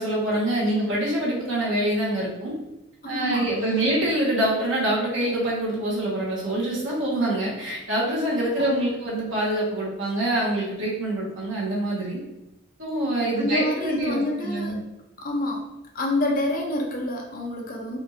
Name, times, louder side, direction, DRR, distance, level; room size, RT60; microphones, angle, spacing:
voice 1, 0.0-2.5 3.0-12.2 12.8-14.8, right 1 dB, 80° right, -4 dB, 1.2 m, -25 dB
voice 2, 3.0-3.5 3.8-3.9 8.6-8.9 13.3-14.8 15.2-15.7 15.9-18.0, left 1 dB, 45° left, -1 dB, 0.7 m, -28 dB
4.3 x 2.7 x 2.7 m, 0.95 s
head